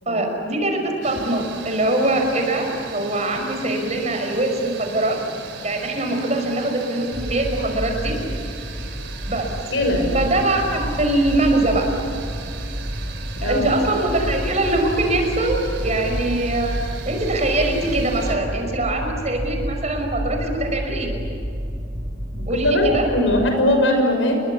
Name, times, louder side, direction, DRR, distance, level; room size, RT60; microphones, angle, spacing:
voice 1, 0.1-5.2 5.6-8.2 9.3-9.5 10.1-11.9 13.4-16.8 17.1-21.1 22.5-23.1, right 2 dB, 35° right, 3 dB, 5.6 m, -22 dB
sound 1, 1.0-18.4, right 5 dB, 70° right, 3.7 m, -38 dB
sound 2, 7.1-23.5, equal, 20° right, 1.8 m, -30 dB
voice 2, 9.7-10.0 13.4-13.7 22.3-24.3, left 1 dB, 85° left, 4 dB, 6.5 m, -20 dB
29.0 x 23.0 x 8.5 m, 2.5 s
head